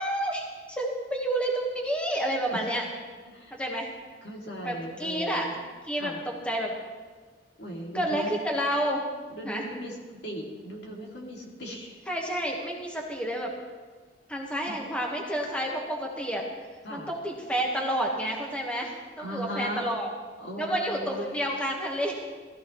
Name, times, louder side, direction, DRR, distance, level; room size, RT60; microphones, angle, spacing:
voice 1, 0.0-2.8 3.5-3.9 4.6-5.5 5.9-6.7 7.9-9.0 9.4-9.6 12.1-13.5 14.3-16.5 16.9-20.1 20.6-22.3, right 1 dB, 5° left, -1 dB, 1.4 m, -30 dB
voice 2, 3.2-3.6 4.2-5.5 5.9-6.2 7.6-8.4 9.3-12.0 14.7-14.8 16.8-17.1 19.2-19.9 20.4-21.4, equal, 70° left, -2 dB, 2.5 m, -38 dB
18.5 x 14.0 x 3.1 m, 1.4 s
head